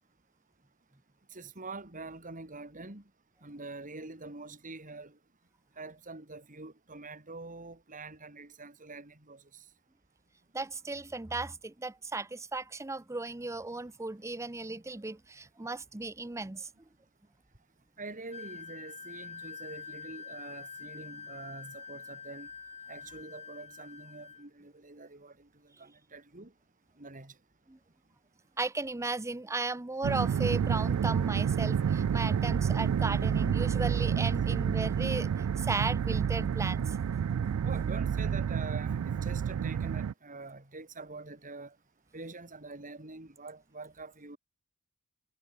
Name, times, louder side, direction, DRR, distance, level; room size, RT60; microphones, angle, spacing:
voice 1, 1.3-3.0 3.4-5.2 5.8-9.7 18.0-22.5 22.9-26.5 27.0-27.4 37.6-41.8 42.1-44.4, right 3 dB, 40° right, 3.3 m, -45 dB
voice 2, 10.5-16.7 27.7-27.8 28.6-35.3 35.6-36.9, right 3 dB, 15° right, 0.6 m, -36 dB
Wind instrument woodwind instrument, 18.3-24.4, left 6 dB, 30° left, 1.1 m, -46 dB
sound 1, 30.0-40.1, right 7 dB, 85° right, 0.3 m, -29 dB
head